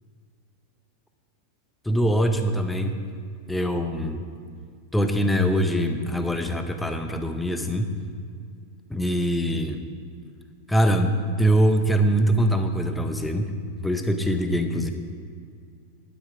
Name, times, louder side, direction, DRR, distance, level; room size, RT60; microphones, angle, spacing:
voice 1, 1.8-3.0 3.5-4.2 4.9-7.9 8.9-9.8 10.7-13.5 13.8-14.9, equal, 5° left, 7 dB, 0.8 m, -23 dB
11.5 x 9.2 x 4.9 m, 2.2 s
figure-of-eight pair, 90°, 0 cm